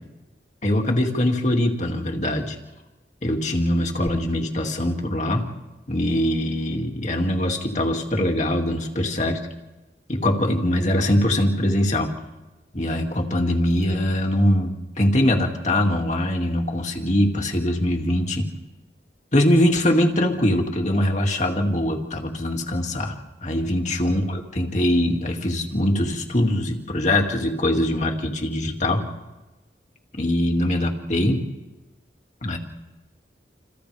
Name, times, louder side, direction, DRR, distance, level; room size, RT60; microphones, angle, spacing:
voice 1, 0.6-2.6 3.2-5.5 5.9-9.4 10.1-12.1 12.7-18.5 19.3-23.2 23.4-29.0 30.2-31.4 32.4-32.6, left 1 dB, 40° left, 2 dB, 2.4 m, -22 dB
29.0 x 28.5 x 3.5 m, 1.1 s
head